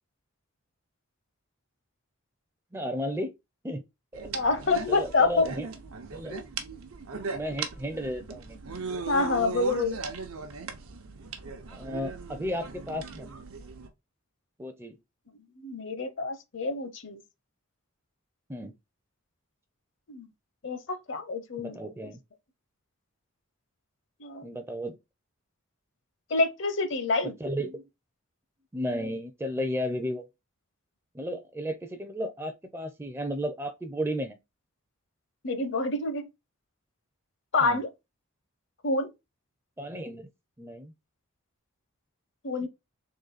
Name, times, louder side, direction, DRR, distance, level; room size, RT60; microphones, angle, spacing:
voice 1, 2.7-3.3 3.6-3.8 4.1-4.3 4.9-5.7 6.1-6.4 7.3-8.6 11.7-13.3 14.6-15.0 18.5-18.7 21.6-22.2 24.4-25.0 27.2-27.8 28.7-30.3 31.1-34.4 37.6-37.8 39.8-40.3 40.6-40.9, equal, 10° right, 0.4 m, -33 dB
sound 1, 4.1-13.9, right 4 dB, 85° right, 0.8 m, -38 dB
voice 2, 4.3-5.5 6.3-6.4 9.1-10.0 15.6-17.2 20.1-20.3 20.6-21.8 24.2-24.5 26.3-27.3 35.4-36.3 37.5-37.9 38.8-39.1 42.4-42.7, left 3 dB, 60° left, 0.7 m, -27 dB
3.9 x 3.0 x 4.0 m
head